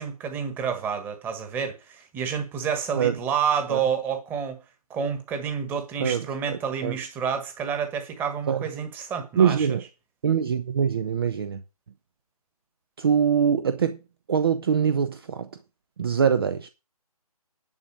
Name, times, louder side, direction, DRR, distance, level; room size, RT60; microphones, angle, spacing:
voice 1, 0.0-4.6 4.9-9.7, right 7 dB, 10° right, 1.5 m, -29 dB
voice 2, 6.0-7.0 8.5-8.6 9.4-9.8 10.2-11.6 13.0-14.0 14.3-15.5 16.0-16.7, right 7 dB, 40° right, 0.8 m, -23 dB
11.0 x 6.2 x 6.1 m
figure-of-eight pair, 150°, 20 cm